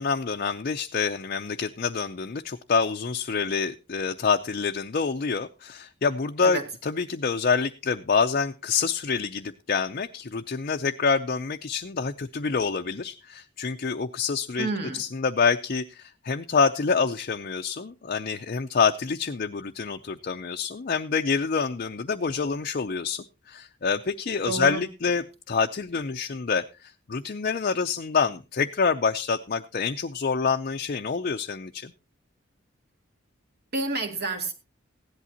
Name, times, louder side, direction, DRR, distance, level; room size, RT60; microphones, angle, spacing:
voice 1, 0.0-14.7 15.0-31.9, left 5 dB, 45° left, 0.5 m, -27 dB
voice 2, 14.6-15.0 24.4-24.8 33.7-34.5, right 3 dB, 55° right, 2.1 m, -29 dB
16.0 x 11.0 x 2.8 m
head